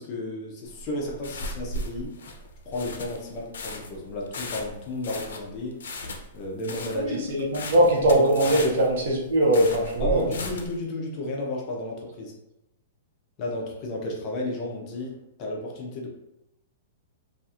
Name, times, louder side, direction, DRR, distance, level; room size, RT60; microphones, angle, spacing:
voice 1, 0.0-2.1 2.7-5.8 6.3-7.2 7.6-7.9 8.1-8.2 8.5-8.7 10.0-12.3 13.4-16.1, left 2 dB, 25° left, -1 dB, 0.4 m, -33 dB
sound 1, 0.6-10.8, left 1 dB, 85° left, 0.4 m, -36 dB
voice 2, 6.9-10.4, right 1 dB, 50° right, -1 dB, 0.6 m, -21 dB
2.7 x 2.4 x 2.3 m, 0.87 s
hypercardioid pair, 180°, 0 cm